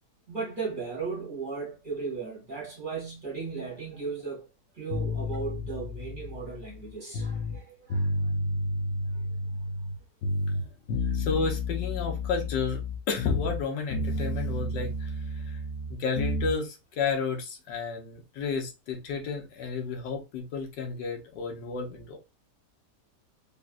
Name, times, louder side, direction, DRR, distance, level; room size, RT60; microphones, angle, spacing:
voice 1, 0.3-4.5 4.7-8.3 11.0-11.1, right 5 dB, 35° right, 1.0 m, -36 dB
sound 1, 4.9-7.6 7.9-10.0 10.2-13.6 13.9-16.5, left 1 dB, 60° left, 0.8 m, -31 dB
voice 2, 11.1-12.8 13.1-15.6 15.9-22.2, left 4 dB, 85° left, 1.5 m, -32 dB
3.7 x 2.6 x 2.3 m
omnidirectional pair, 1.9 m